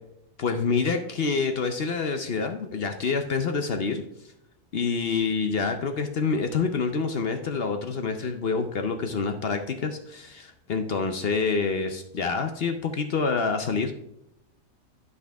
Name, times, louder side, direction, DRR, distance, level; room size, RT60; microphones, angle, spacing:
voice 1, 0.4-4.0 4.7-13.9, left 5 dB, 55° left, 6 dB, 0.7 m, -27 dB
11.5 x 5.5 x 3.4 m, 0.82 s
omnidirectional pair, 1.7 m